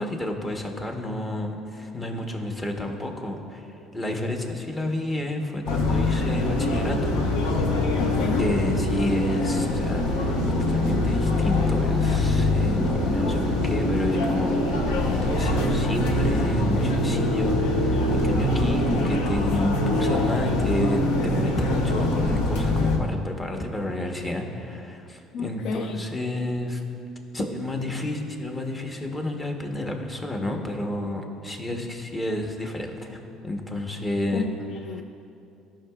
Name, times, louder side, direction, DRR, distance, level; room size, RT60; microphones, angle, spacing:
voice 1, 0.0-7.1 8.4-10.4 10.7-26.8 27.3-34.5 34.9-35.0, left 1 dB, 20° left, 3 dB, 1.0 m, -30 dB
sound 1, 5.7-23.0, left 2 dB, 90° left, 0.8 m, -24 dB
voice 2, 8.0-8.4 25.3-26.0 34.3-35.0, left 4 dB, 65° left, 6 dB, 0.3 m, -31 dB
sound 2, 9.8-19.2, right 2 dB, 20° right, 0.7 m, -34 dB
14.0 x 5.7 x 2.4 m, 2.7 s
supercardioid pair, 95°, 0 cm